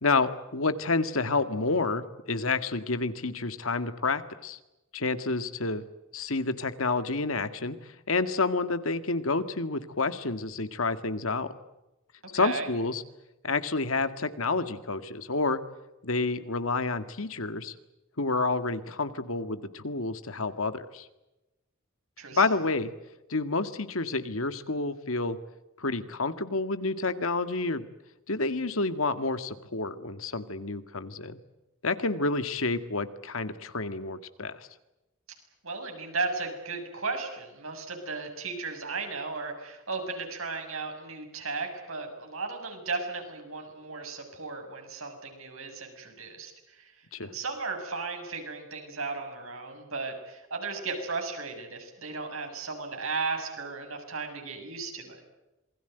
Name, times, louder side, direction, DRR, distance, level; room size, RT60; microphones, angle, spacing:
voice 1, 0.0-4.6 4.9-5.9 6.1-11.5 12.3-13.0 13.4-15.6 16.0-17.7 18.2-21.1 22.3-22.9 23.3-25.4 25.8-27.8 28.3-31.4 31.8-34.7 47.1-47.3, left 3 dB, 80° left, 10 dB, 1.8 m, -29 dB
voice 2, 12.2-12.7 22.2-22.5 35.6-55.2, right 4 dB, 80° right, 4 dB, 7.1 m, -35 dB
27.5 x 21.5 x 8.0 m, 0.98 s
head